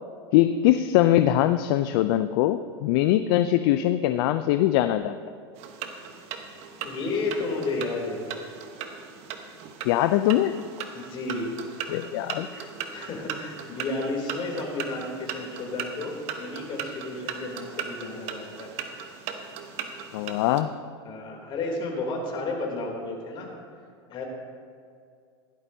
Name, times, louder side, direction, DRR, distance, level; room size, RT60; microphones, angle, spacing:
voice 1, 0.3-5.2 9.8-10.6 11.9-12.7 20.1-20.7, left 13 dB, 60° left, 11 dB, 0.4 m, -22 dB
sound 1, 5.6-20.6, right 7 dB, 50° right, 1.2 m, -38 dB
voice 2, 6.8-8.4 10.9-11.5 12.9-18.7 21.0-23.5 24.1-24.3, left 2 dB, 40° left, 0 dB, 3.2 m, -32 dB
16.0 x 12.0 x 2.8 m, 2.3 s
hypercardioid pair, 100°, 14 cm